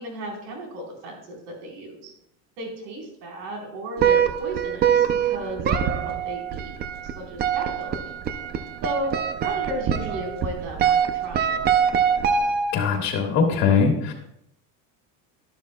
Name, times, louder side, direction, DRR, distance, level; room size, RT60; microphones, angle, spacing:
voice 1, 0.0-2.1 2.6-6.7 7.0-8.1 8.8-9.2 9.4-11.7, right 1 dB, 85° right, 0 dB, 4.1 m, -34 dB
sound 1, 4.0-13.0, right 8 dB, 30° right, 0.5 m, -24 dB
voice 2, 12.7-14.1, left 5 dB, 50° left, 2 dB, 1.7 m, -21 dB
12.0 x 11.5 x 2.2 m, 0.75 s
cardioid pair, 160°, 35 cm